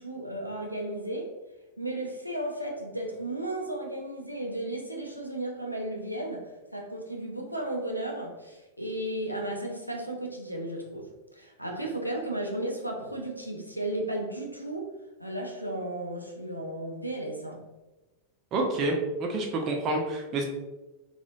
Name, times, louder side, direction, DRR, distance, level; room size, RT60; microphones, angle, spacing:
voice 1, 0.0-1.3 1.8-14.9 15.2-17.7, right 1 dB, 90° right, 0 dB, 0.4 m, -34 dB
voice 2, 18.5-20.4, right 2 dB, 35° right, 1 dB, 0.6 m, -28 dB
2.9 x 2.3 x 2.6 m, 1.1 s
figure-of-eight pair, 90°, 0 cm